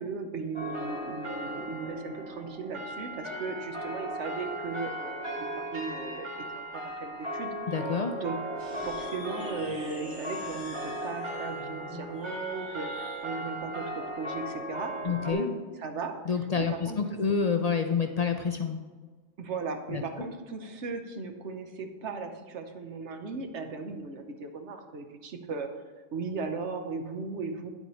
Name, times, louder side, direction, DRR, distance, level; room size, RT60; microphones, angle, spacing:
voice 1, 0.0-6.3 6.5-7.5 8.2-8.4 8.7-15.5 15.8-17.0 19.4-25.7 26.1-27.7, right 4 dB, 75° right, 6 dB, 1.2 m, -37 dB
sound 1, 0.5-15.3, right 1 dB, 25° right, 1.4 m, -37 dB
voice 2, 7.7-8.2 15.0-15.5 16.3-18.8 19.9-20.2, left 6 dB, 50° left, 6 dB, 0.5 m, -28 dB
sound 2, 8.5-13.3, equal, 50° right, 2.9 m, -49 dB
9.8 x 8.0 x 3.1 m, 1.4 s
omnidirectional pair, 1.2 m